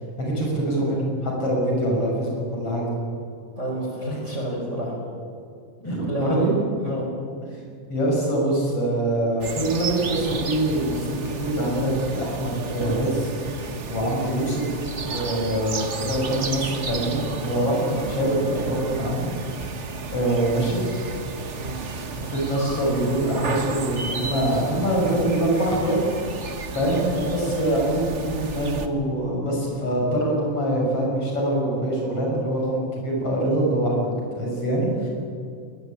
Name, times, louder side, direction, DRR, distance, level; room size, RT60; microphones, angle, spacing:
voice 1, 0.2-2.8 5.8-6.5 7.9-19.8 20.1-20.8 22.2-26.0 26.3-26.4 26.7-35.1, right 1 dB, 45° left, -2 dB, 7.6 m, -24 dB
voice 2, 3.6-5.0 5.8-6.5 6.8-7.1 21.5-21.8, right 1 dB, 20° right, -1 dB, 4.9 m, -29 dB
sound 1, 9.4-28.9, right 4 dB, 80° right, 0.6 m, -32 dB
21.5 x 21.0 x 9.3 m, 2.3 s
omnidirectional pair, 3.7 m